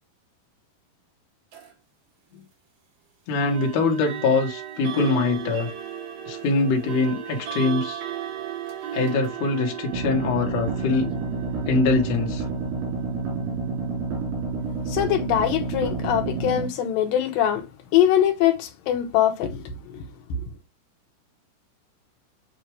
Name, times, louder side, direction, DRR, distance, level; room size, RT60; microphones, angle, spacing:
sound 1, 1.5-1.7 3.4-16.2, right 9 dB, 60° right, 3.6 m, -37 dB
voice 1, 3.3-5.7 6.3-8.0 8.9-11.1 11.7-12.4, left 3 dB, 55° left, 2.1 m, -23 dB
sound 2, 9.9-16.7, right 4 dB, 90° right, 4.5 m, -29 dB
voice 2, 14.9-17.7 17.9-20.0, left 10 dB, 75° left, 2.4 m, -22 dB
8.0 x 2.8 x 4.6 m
omnidirectional pair, 4.5 m